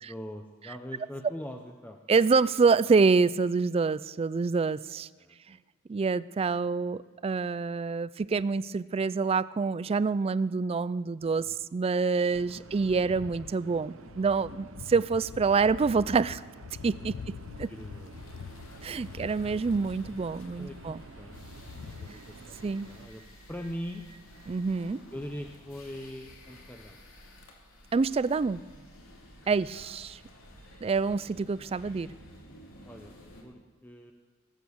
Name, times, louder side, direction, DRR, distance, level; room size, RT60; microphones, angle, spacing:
voice 1, 0.0-2.0 5.2-5.6 6.6-6.9 11.4-11.6 12.6-12.7 17.7-18.4 18.8-19.2 20.6-21.4 21.7-23.2 23.5-24.0 25.1-27.0 29.4-29.6 32.8-33.1 33.4-34.1, equal, 10° left, 3 dB, 0.7 m, -42 dB
voice 2, 2.1-5.1 5.5-5.6 5.9-16.4 16.8-17.7 18.8-21.0 22.6-22.9 24.5-25.0 27.9-28.6 29.5-30.2 30.8-32.1, right 4 dB, 30° right, 18 dB, 0.3 m, -27 dB
sound 1, 12.3-22.1, left 7 dB, 65° left, 0.3 m, -46 dB
sound 2, 12.3-23.1, right 3 dB, 70° right, 0.8 m, -50 dB
sound 3, 18.1-33.4, equal, 80° left, 2.8 m, -52 dB
18.0 x 8.3 x 7.1 m, 1.5 s
head